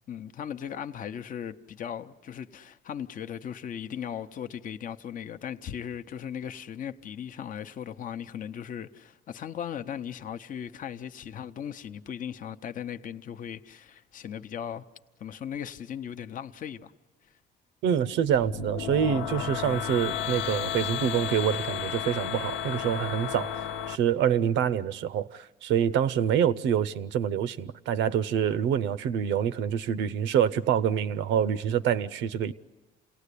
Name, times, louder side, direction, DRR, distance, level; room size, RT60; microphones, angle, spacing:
voice 1, 0.1-14.8 15.2-16.9 17.2-17.4, left 9 dB, 45° left, 0.7 m, -38 dB
voice 2, 17.8-23.5 23.9-32.5, right 9 dB, 80° right, 0.7 m, -26 dB
sound 1, 18.3-24.0, left 9 dB, 75° left, 0.9 m, -33 dB
28.0 x 18.5 x 8.4 m
cardioid pair, 115°, 19 cm